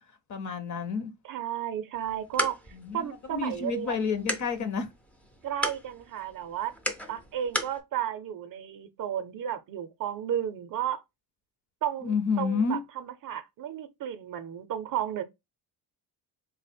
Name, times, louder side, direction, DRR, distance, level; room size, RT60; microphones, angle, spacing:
voice 1, 0.3-1.1 2.8-4.9 12.0-12.8, left 5 dB, 40° left, 0.6 m, -30 dB
voice 2, 1.2-4.3 5.4-6.7 7.1-11.0 11.8-15.2, right 10 dB, 50° right, 0.5 m, -33 dB
sound 1, 1.9-7.8, equal, 5° left, 0.3 m, -36 dB
3.2 x 2.1 x 4.1 m
cardioid pair, 135°, 43 cm